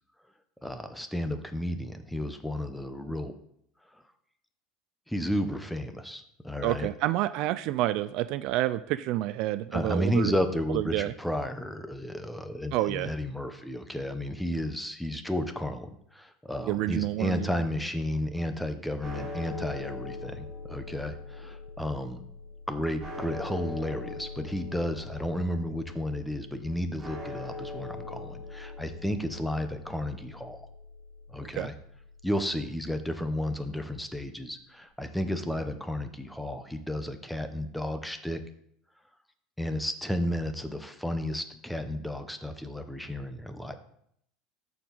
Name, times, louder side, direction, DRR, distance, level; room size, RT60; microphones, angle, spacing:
voice 1, 0.6-3.3 5.1-6.9 9.7-22.2 22.7-30.6 31.3-31.7 32.2-38.4 39.6-43.8, left 1 dB, 5° left, 8 dB, 0.8 m, -32 dB
voice 2, 6.6-10.3 10.7-11.1 12.7-13.1 16.7-17.5 31.4-31.7, right 15 dB, 60° right, 15 dB, 0.3 m, -29 dB
sound 1, 19.0-33.2, left 3 dB, 20° right, 2.9 m, -42 dB
13.5 x 4.6 x 4.0 m, 0.71 s
supercardioid pair, 130°, 0 cm